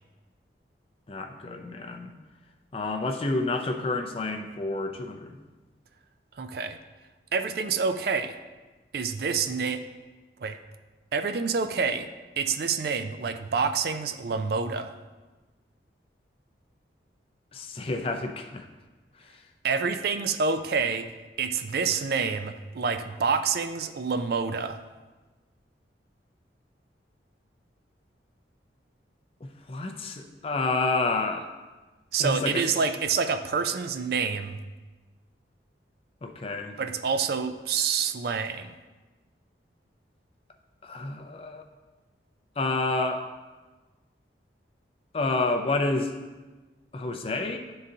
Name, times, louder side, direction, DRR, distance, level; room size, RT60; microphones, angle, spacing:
voice 1, 1.1-2.1 2.7-5.4 17.5-18.7 29.4-31.5 32.2-32.6 36.2-36.7 40.8-41.7 42.6-43.3 45.1-46.1 46.9-47.6, left 3 dB, 30° left, 4 dB, 0.4 m, -29 dB
voice 2, 6.4-6.8 7.3-8.4 8.9-9.8 10.4-10.6 11.1-12.1 12.4-14.9 19.6-21.1 21.4-24.8 32.1-34.6 36.8-38.8, right 5 dB, 55° right, 9 dB, 0.3 m, -27 dB
11.0 x 3.8 x 2.7 m, 1.2 s
head